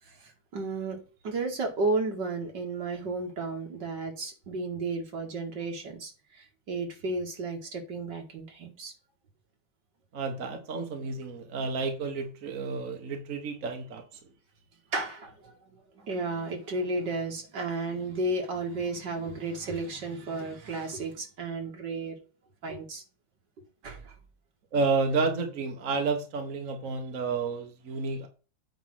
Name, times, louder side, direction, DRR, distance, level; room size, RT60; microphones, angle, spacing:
voice 1, 0.0-8.9 14.9-22.2 22.6-23.0 23.8-24.1, right 3 dB, 75° right, 2.6 m, -33 dB
voice 2, 10.1-14.0 24.7-28.3, right 4 dB, 50° right, 1.6 m, -30 dB
9.3 x 3.5 x 6.2 m
omnidirectional pair, 1.9 m